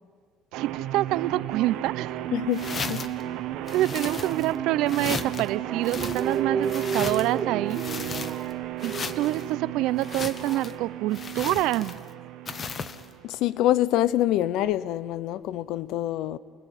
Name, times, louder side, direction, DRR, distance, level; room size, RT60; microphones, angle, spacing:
voice 1, 0.5-2.1 3.7-7.8 8.8-12.0, right 15 dB, 75° right, 0.7 m, -26 dB
sound 1, 0.5-13.5, right 13 dB, 90° right, 1.7 m, -34 dB
voice 2, 2.3-3.1 13.2-16.4, left 13 dB, 65° left, 0.7 m, -26 dB
sound 2, 2.5-3.2 3.7-4.6 4.9-5.5 5.8-7.4 7.7-8.5 8.8-9.4 10.0-10.7 11.1-12.1 12.5-13.1, left 5 dB, 30° left, 0.9 m, -36 dB
sound 3, 3.5-5.0 5.6-9.5 10.1-10.6, right 6 dB, 30° right, 0.6 m, -33 dB
28.0 x 19.5 x 10.0 m
cardioid pair, 160°, 0 cm